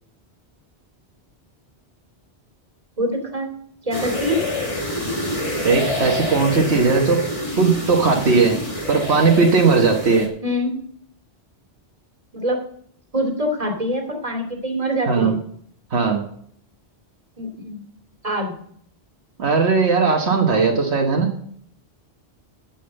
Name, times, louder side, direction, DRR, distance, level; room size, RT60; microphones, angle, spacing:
voice 1, 3.0-3.5 3.8-4.4 10.4-10.8 12.3-12.6 13.1-15.4 17.4-17.8 18.2-18.5, equal, 30° right, 2 dB, 2.6 m, -24 dB
sound 1, 3.9-10.3, left 1 dB, 30° left, 2.2 m, -27 dB
voice 2, 5.6-7.2 7.6-8.6 8.9-10.3 15.1-15.4 15.9-16.2 19.4-21.3, right 4 dB, 75° right, 1 dB, 1.5 m, -18 dB
8.7 x 7.5 x 7.9 m, 0.64 s
omnidirectional pair, 1.1 m